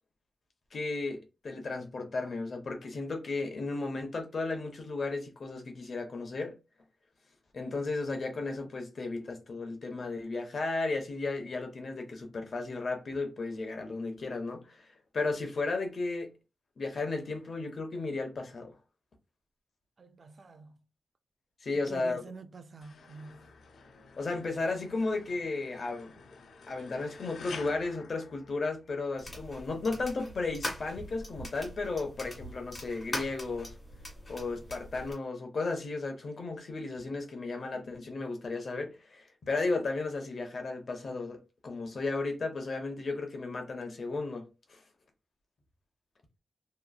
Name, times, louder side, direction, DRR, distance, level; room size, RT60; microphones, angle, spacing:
voice 1, 0.7-6.5 7.5-14.9 15.1-16.3 16.8-18.7 21.6-22.2 24.2-26.2 26.7-33.7 34.3-44.8, left 3 dB, 60° left, 0.7 m, -34 dB
voice 2, 20.0-20.7 21.9-23.5, right 3 dB, 50° right, 0.3 m, -47 dB
sound 1, 22.8-29.1, left 5 dB, 85° left, 0.3 m, -50 dB
sound 2, 29.2-35.1, left 1 dB, 30° left, 1.6 m, -42 dB
2.9 x 2.3 x 2.3 m
wide cardioid pair, 105°, 0 cm